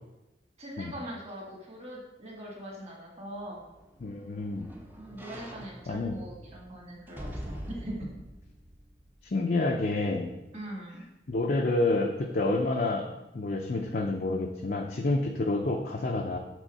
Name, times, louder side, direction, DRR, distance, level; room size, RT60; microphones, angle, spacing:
voice 1, 0.6-3.6 5.0-8.1 10.5-11.0, right 1 dB, 35° right, -2 dB, 1.5 m, -41 dB
sound 1, 3.4-9.8 10.2-10.3, equal, 10° right, 0.6 m, -45 dB
voice 2, 4.0-4.7 5.9-6.1 9.2-10.3 11.3-16.4, left 2 dB, 45° left, 0 dB, 0.5 m, -28 dB
6.2 x 3.7 x 5.4 m, 0.99 s
head